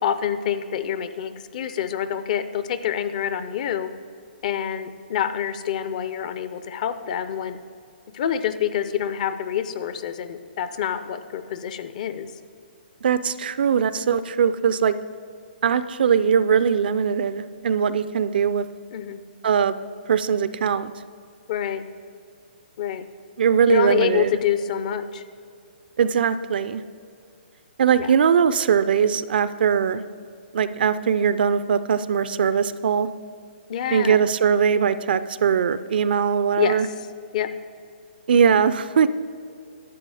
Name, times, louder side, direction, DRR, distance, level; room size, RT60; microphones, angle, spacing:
voice 1, 0.0-3.9 4.4-7.6 8.1-12.3 18.9-19.2 21.5-21.8 22.8-23.0 23.7-25.2 28.0-28.1 33.7-34.2 36.6-36.8 37.3-37.5, left 9 dB, 45° left, 11 dB, 0.6 m, -26 dB
voice 2, 13.0-15.0 15.6-18.6 19.4-19.7 20.1-20.9 23.4-24.4 26.0-26.8 27.8-30.0 30.5-33.1 33.9-36.9 38.3-39.1, right 7 dB, 60° right, 14 dB, 0.5 m, -20 dB
11.5 x 7.5 x 4.9 m, 2.3 s
hypercardioid pair, 150°, 6 cm